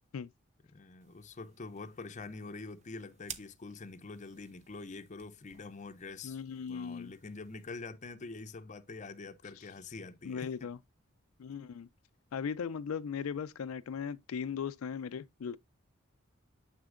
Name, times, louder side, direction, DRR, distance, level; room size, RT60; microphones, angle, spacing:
voice 1, 0.7-6.4 6.7-10.5, left 3 dB, 35° left, 0.6 m, -45 dB
sound 1, 1.0-7.8, right 7 dB, 35° right, 0.7 m, -54 dB
voice 2, 6.2-7.1 10.2-10.8 11.4-11.9 12.3-15.6, left 6 dB, 85° left, 0.4 m, -38 dB
7.0 x 6.3 x 2.5 m
head